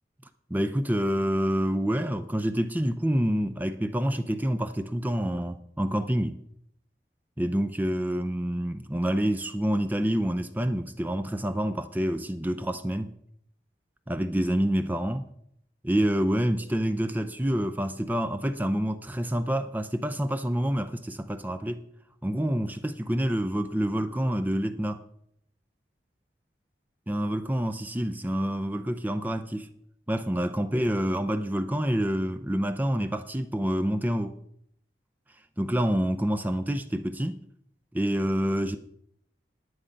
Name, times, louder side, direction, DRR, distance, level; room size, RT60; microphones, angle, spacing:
voice 1, 0.5-6.4 7.4-13.1 14.1-15.3 15.8-21.8 22.2-25.0 27.1-29.7 30.1-34.4 35.6-37.4 37.9-38.8, equal, 10° right, 0.5 m, -27 dB
9.9 x 9.8 x 5.2 m
head